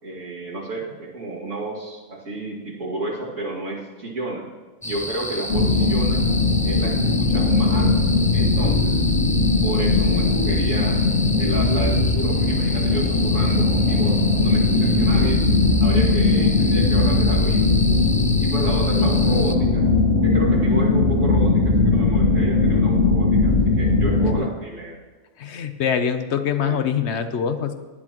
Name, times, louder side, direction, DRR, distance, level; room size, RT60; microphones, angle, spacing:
voice 1, 0.0-4.5 4.8-6.2 6.6-7.9 8.3-9.0 9.6-11.0 11.4-15.4 15.8-17.7 18.4-19.8 20.2-25.0 26.6-26.8, right 2 dB, 80° right, -4 dB, 2.7 m, -31 dB
sound 1, 4.8-19.6, left 1 dB, 15° left, 0.3 m, -31 dB
sound 2, 5.5-24.3, left 3 dB, 90° left, 1.9 m, -19 dB
voice 2, 25.4-27.7, left 7 dB, 65° left, 9 dB, 1.0 m, -24 dB
18.0 x 10.5 x 3.0 m, 1.3 s
omnidirectional pair, 1.3 m